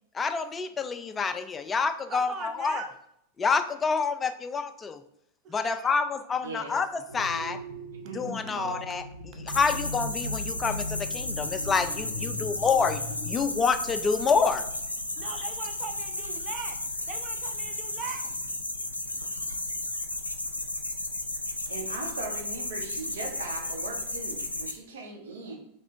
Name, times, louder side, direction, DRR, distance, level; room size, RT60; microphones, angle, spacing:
voice 1, 0.1-2.9 3.4-5.0 5.5-7.6 8.1-9.0 9.4-14.6, left 5 dB, 20° left, 9 dB, 0.3 m, -27 dB
voice 2, 2.1-2.9 5.4-5.9 15.2-16.8 17.1-18.3, right 6 dB, 30° right, 6 dB, 0.6 m, -40 dB
voice 3, 6.4-6.8 8.0-8.8 21.7-25.6, right 3 dB, 60° right, 2 dB, 0.9 m, -39 dB
sound 1, 7.1-13.4, left 1 dB, 85° right, 1.2 m, -38 dB
sound 2, 9.5-24.7, left 2 dB, 85° left, 0.4 m, -34 dB
3.3 x 3.2 x 4.3 m, 0.75 s
figure-of-eight pair, 90°, 0 cm